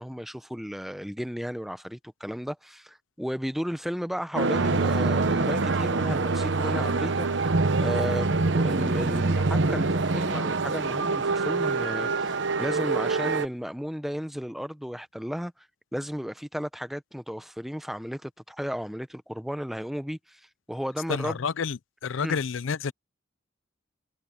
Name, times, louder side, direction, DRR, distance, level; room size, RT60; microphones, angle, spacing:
voice 1, 0.0-7.5 7.8-12.3 12.6-15.5 15.9-20.4 20.7-21.4 22.2-22.4, equal, ahead, 0.8 m, -34 dB
sound 1, 4.3-13.5, right 3 dB, 70° right, 1.0 m, -25 dB
voice 2, 21.1-22.9, left 6 dB, 85° left, 0.5 m, -29 dB
head